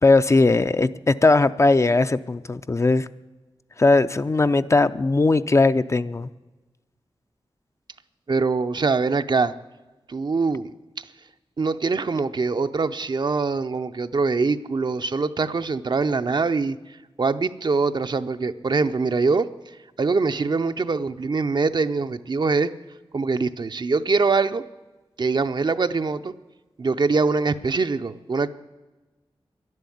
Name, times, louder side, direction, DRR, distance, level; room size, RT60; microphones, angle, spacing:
voice 1, 0.0-3.1 3.8-6.3, left 3 dB, 30° left, 12 dB, 0.5 m, -19 dB
voice 2, 8.3-9.5 10.1-10.7 11.6-16.8 17.2-19.5 20.0-22.7 23.1-24.6 25.2-26.3 26.8-28.5, right 4 dB, 50° right, 10 dB, 0.6 m, -23 dB
11.5 x 11.0 x 9.2 m, 1.2 s
wide cardioid pair, 100°, 9 cm